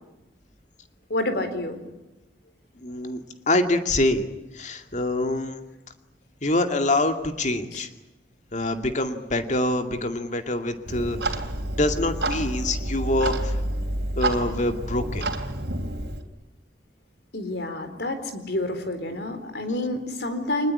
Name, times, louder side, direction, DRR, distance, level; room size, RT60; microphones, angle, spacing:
voice 1, 1.1-1.8 7.7-7.8 17.3-20.7, left 1 dB, 65° left, 8 dB, 4.1 m, -28 dB
voice 2, 2.8-3.2 3.5-4.2 4.5-5.6 6.4-7.9 8.5-11.4 11.8-13.5 14.2-15.3, left 1 dB, 45° left, 7 dB, 2.3 m, -25 dB
Clock, 10.9-16.2, right 1 dB, 70° right, 3.2 m, -29 dB
25.0 x 20.5 x 9.9 m, 1.0 s
head